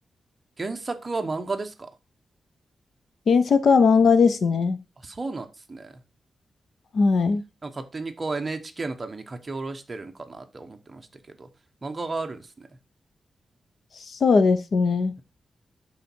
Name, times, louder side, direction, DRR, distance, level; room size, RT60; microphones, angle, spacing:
voice 1, 0.6-1.9 5.0-5.9 7.6-11.5 11.8-12.7, right 3 dB, 25° right, 1.0 m, -33 dB
voice 2, 3.3-4.8 6.9-7.4 14.1-15.1, left 5 dB, 55° left, 0.7 m, -19 dB
11.5 x 4.1 x 4.5 m
wide cardioid pair, 160°, 0 cm